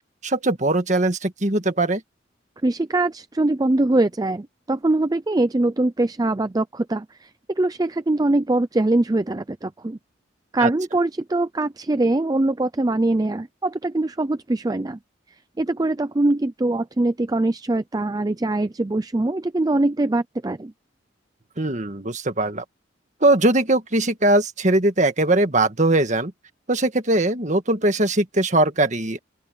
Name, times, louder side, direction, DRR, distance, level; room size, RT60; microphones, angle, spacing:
voice 1, 0.2-2.0 10.6-10.7 21.6-22.6 23.2-26.3 26.7-29.2, right 2 dB, 40° right, 1.7 m, -20 dB
voice 2, 2.6-10.0 10.5-15.0 15.6-20.7, right 2 dB, 20° right, 0.4 m, -22 dB
open air
head